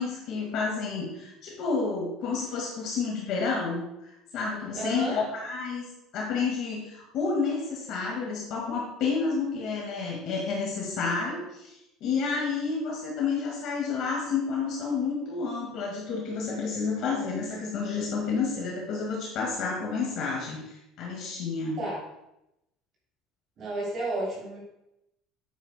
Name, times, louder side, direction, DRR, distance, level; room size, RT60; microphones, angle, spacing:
voice 1, 0.0-5.8 6.1-21.8, left 4 dB, 55° left, -2 dB, 1.8 m, -30 dB
voice 2, 4.7-5.2 21.8-22.0 23.6-24.6, right 2 dB, 35° right, -4 dB, 3.2 m, -32 dB
9.3 x 8.9 x 2.2 m, 0.87 s
cardioid pair, 160°, 0 cm